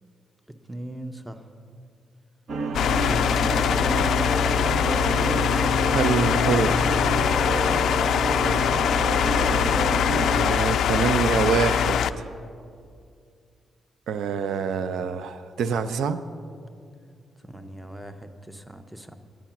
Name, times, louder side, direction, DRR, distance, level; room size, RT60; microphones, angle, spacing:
voice 1, 0.7-1.5 2.8-3.2 3.7-4.1 17.4-19.2, right 1 dB, 5° right, 9 dB, 0.7 m, -40 dB
sound 1, 2.5-10.5, right 3 dB, 60° right, 0.8 m, -29 dB
sound 2, 2.7-12.1, left 8 dB, 75° left, 0.3 m, -22 dB
voice 2, 5.9-7.1 10.2-12.2 14.1-16.2, right 6 dB, 80° right, 12 dB, 0.4 m, -26 dB
10.0 x 9.1 x 5.9 m, 2.3 s
cardioid pair, 105°, 0 cm